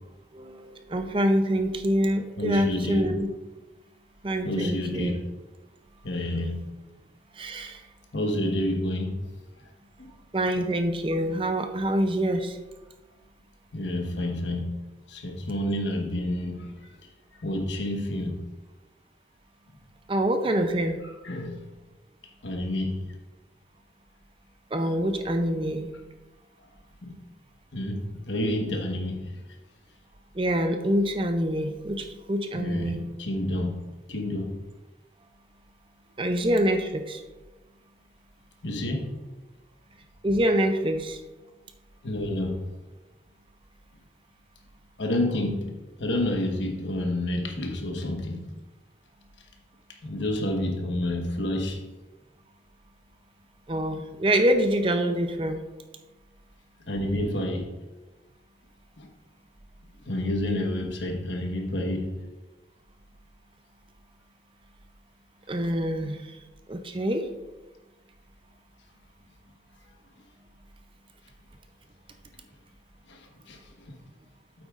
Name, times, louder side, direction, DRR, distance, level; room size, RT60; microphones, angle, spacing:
voice 1, 0.3-3.3 4.2-5.2 7.4-7.8 10.3-12.6 20.1-21.0 24.7-25.9 30.3-33.0 36.2-37.2 40.2-41.2 53.7-55.6 65.5-66.2 66.7-67.3, right 1 dB, 30° right, 7 dB, 0.5 m, -25 dB
voice 2, 2.4-3.1 4.4-5.2 6.0-6.6 8.1-9.1 13.7-14.7 15.1-16.7 17.4-18.4 21.2-21.6 22.4-23.0 27.0-27.2 27.7-29.2 32.5-33.7 34.1-34.5 38.6-39.1 42.0-42.6 45.0-45.7 46.0-48.4 50.0-51.8 56.9-57.7 59.0-59.1 60.0-62.1 73.5-73.6, left 1 dB, 85° left, 2 dB, 1.3 m, -29 dB
8.9 x 7.8 x 2.5 m, 1.2 s
head